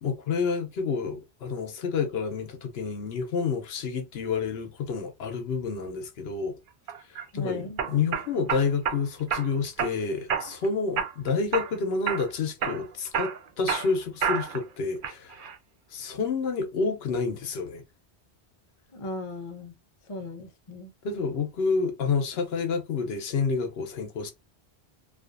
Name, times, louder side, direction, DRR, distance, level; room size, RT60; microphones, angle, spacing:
voice 1, 0.0-6.6 7.1-15.5 15.9-17.8 21.0-24.3, left 5 dB, 75° left, 0.9 m, -29 dB
sound 1, 6.9-7.2 7.8-9.0 9.3-9.9 10.3-10.7 11.0-11.7 12.1-12.3 12.6-14.6 15.0-15.5, right 7 dB, 60° right, 0.6 m, -29 dB
voice 2, 7.3-7.8 18.9-19.7 20.1-20.9, left 2 dB, 45° left, 0.4 m, -37 dB
2.5 x 2.4 x 2.4 m
omnidirectional pair, 1.1 m